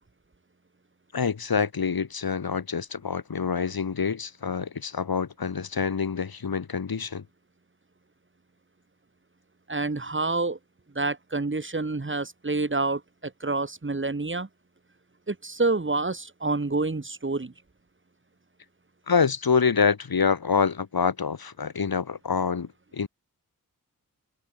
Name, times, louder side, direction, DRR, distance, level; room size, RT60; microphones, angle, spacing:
voice 1, 1.1-7.2 19.1-23.1, left 6 dB, 80° left, 5.3 m, -26 dB
voice 2, 9.7-10.6 10.9-14.5 15.3-17.5, right 3 dB, 35° right, 6.5 m, -28 dB
wide cardioid pair, 120°, 36 cm